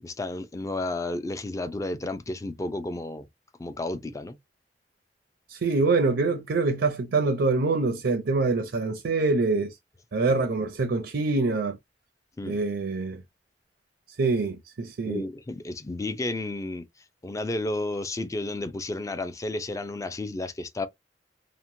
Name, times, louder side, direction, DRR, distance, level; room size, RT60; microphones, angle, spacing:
voice 1, 0.0-3.3 3.6-4.4 10.3-10.5 12.4-12.6 15.0-16.8 17.2-20.9, left 2 dB, 20° left, 0.4 m, -32 dB
voice 2, 5.5-9.7 10.1-11.8 12.4-13.2 14.2-15.2, right 3 dB, 75° right, 0.5 m, -25 dB
2.9 x 2.1 x 2.5 m
head